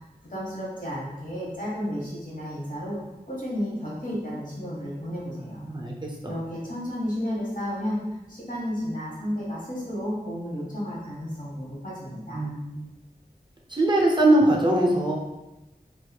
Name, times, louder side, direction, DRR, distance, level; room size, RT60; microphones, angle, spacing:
voice 1, 0.3-3.0 3.3-5.6 6.2-12.4, equal, 50° left, -6 dB, 1.0 m, -32 dB
voice 2, 12.3-12.9 13.7-15.1, right 1 dB, 30° right, -2 dB, 0.4 m, -21 dB
2.7 x 2.3 x 2.2 m, 1.0 s
wide cardioid pair, 40°, 17 cm